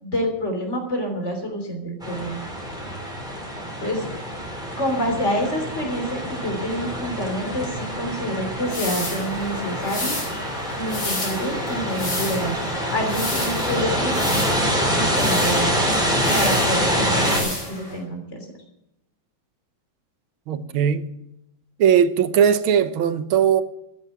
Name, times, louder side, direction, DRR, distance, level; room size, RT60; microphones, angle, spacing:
voice 1, 0.0-2.4 3.8-4.1 4.8-10.2 10.8-12.6 12.9-14.2 14.9-16.0 16.3-18.5, equal, 35° left, 3.6 m, -27 dB
sound 1, 2.0-17.4, equal, ahead, 4.0 m, -25 dB
sound 2, 8.7-18.0, left 1 dB, 75° left, 6.6 m, -32 dB
voice 2, 20.5-21.1 21.8-23.6, right 8 dB, 85° right, 1.7 m, -19 dB
13.5 x 9.7 x 7.2 m
omnidirectional pair, 2.2 m